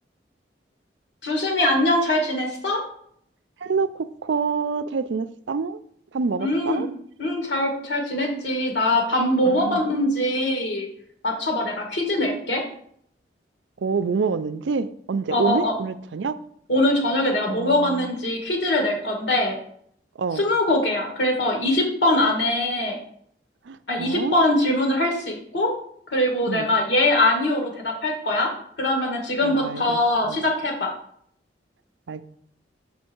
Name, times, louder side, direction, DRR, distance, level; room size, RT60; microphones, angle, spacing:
voice 1, 1.2-2.8 6.4-6.9 7.2-10.9 11.2-12.6 15.3-15.7 16.7-19.6 20.4-23.0 23.9-25.7 26.1-28.5 28.8-30.9, left 1 dB, 80° left, 1 dB, 2.0 m, -22 dB
voice 2, 3.6-5.8 6.1-6.9 9.4-9.8 13.8-16.3 17.5-18.1 20.2-20.5 23.6-24.4 26.5-26.7 29.4-30.0 30.2-30.4 32.1-32.2, right 5 dB, 85° right, 13 dB, 0.4 m, -27 dB
6.3 x 5.5 x 4.5 m, 0.66 s
head